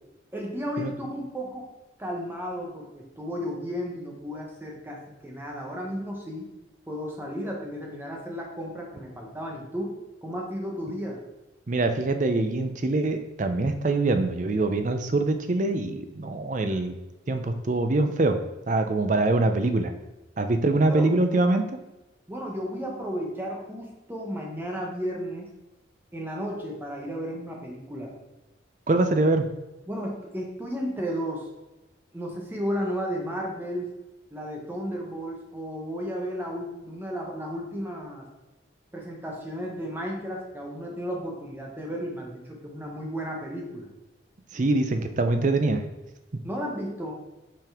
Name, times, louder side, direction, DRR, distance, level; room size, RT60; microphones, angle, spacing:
voice 1, 0.3-1.7 2.0-6.5 6.9-11.2 20.6-21.2 22.3-25.5 26.1-28.1 29.9-31.5 32.1-33.9 34.3-38.2 38.9-43.9 46.4-47.2, equal, 10° right, -1 dB, 1.1 m, -33 dB
voice 2, 11.7-17.0 17.3-18.4 18.7-19.9 20.4-21.6 28.9-29.4 44.5-45.8, right 2 dB, 40° right, 7 dB, 0.5 m, -24 dB
5.7 x 5.3 x 3.5 m, 1.0 s
head